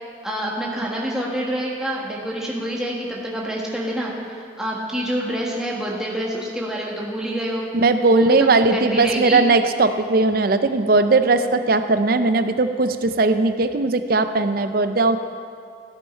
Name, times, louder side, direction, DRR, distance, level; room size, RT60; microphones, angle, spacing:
voice 1, 0.2-7.7 8.1-9.4, equal, 5° right, -4 dB, 1.4 m, -27 dB
voice 2, 7.7-15.2, right 3 dB, 50° right, 10 dB, 0.5 m, -18 dB
14.5 x 9.0 x 4.5 m, 2.3 s
head